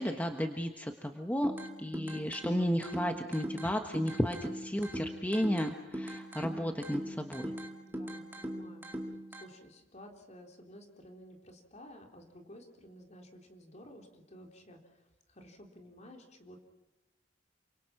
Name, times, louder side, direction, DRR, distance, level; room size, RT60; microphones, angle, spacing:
voice 1, 0.0-1.5 1.8-7.5, equal, 10° left, 5 dB, 1.3 m, -33 dB
sound 1, 1.4-9.4, equal, 10° right, 2.4 m, -41 dB
voice 2, 7.8-16.6, equal, 40° left, 3 dB, 3.9 m, -53 dB
28.5 x 25.5 x 6.0 m, 1.1 s
head